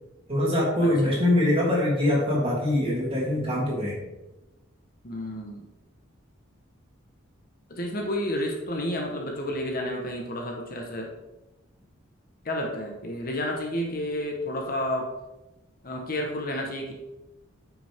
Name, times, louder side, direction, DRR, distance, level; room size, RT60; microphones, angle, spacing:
voice 1, 0.3-4.0, left 1 dB, 25° right, -5 dB, 3.0 m, -23 dB
voice 2, 5.0-5.6 7.7-11.1 12.4-15.1 15.8-16.9, left 1 dB, 45° left, 1 dB, 1.2 m, -30 dB
9.9 x 6.1 x 3.6 m, 1.0 s
head